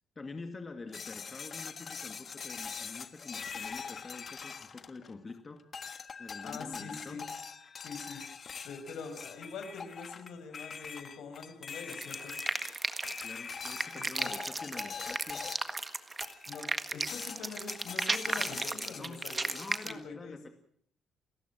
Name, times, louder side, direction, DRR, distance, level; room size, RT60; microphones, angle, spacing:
voice 1, 0.2-5.6 6.2-7.2 13.2-15.4 18.3-18.5 19.0-19.2 19.5-20.5, left 3 dB, 30° left, 6 dB, 2.2 m, -46 dB
sound 1, 0.9-5.3 5.7-15.8 16.2-16.7 17.1-19.8, left 6 dB, 45° left, 1.5 m, -43 dB
voice 2, 6.4-7.3 7.8-8.2 8.6-12.3 13.9-14.3 16.5-19.6 19.8-20.4, left 5 dB, 75° left, 7 dB, 5.6 m, -44 dB
sound 2, 11.9-19.9, right 3 dB, 25° right, 1.7 m, -35 dB
29.0 x 15.5 x 6.3 m, 0.62 s
cardioid pair, 90°, 0 cm